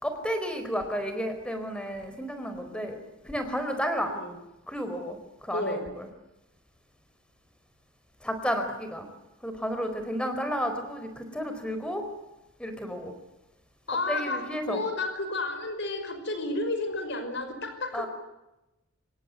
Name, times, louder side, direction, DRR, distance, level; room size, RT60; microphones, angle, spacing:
voice 1, 0.0-3.0 3.2-4.1 4.7-5.2 5.5-5.8 8.2-9.1 9.4-12.0 12.6-13.1 14.1-14.8 17.9-18.1, equal, 5° left, 7 dB, 4.5 m, -31 dB
voice 2, 5.5-5.9 13.9-18.1, left 2 dB, 55° left, 8 dB, 5.6 m, -31 dB
27.0 x 22.5 x 9.6 m, 0.97 s
head